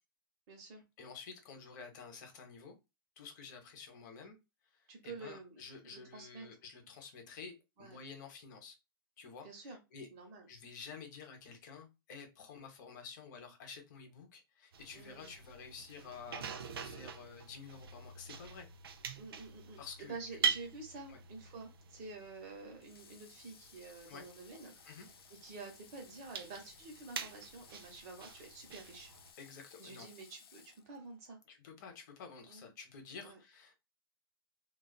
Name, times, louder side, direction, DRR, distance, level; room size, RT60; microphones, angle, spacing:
voice 1, 0.5-0.8 4.9-6.5 7.8-8.0 9.4-9.8 10.1-10.5 14.9-15.3 19.1-29.1 29.8-31.4 32.5-32.7 33.2-33.4, right 3 dB, 40° right, 0.9 m, -49 dB
voice 2, 1.0-2.7 3.2-4.4 4.7-8.8 9.2-10.1 10.5-18.7 19.8-20.2 21.1-21.2 24.1-24.3 24.9-25.1 29.4-30.1 31.5-33.7, left 5 dB, 55° left, 0.7 m, -51 dB
sound 1, 14.7-29.3, right 6 dB, 90° right, 0.4 m, -44 dB
Water / Water tap faucet, 22.8-31.3, left 7 dB, 90° left, 0.4 m, -60 dB
2.3 x 2.3 x 2.2 m
hypercardioid pair, 140°, 12 cm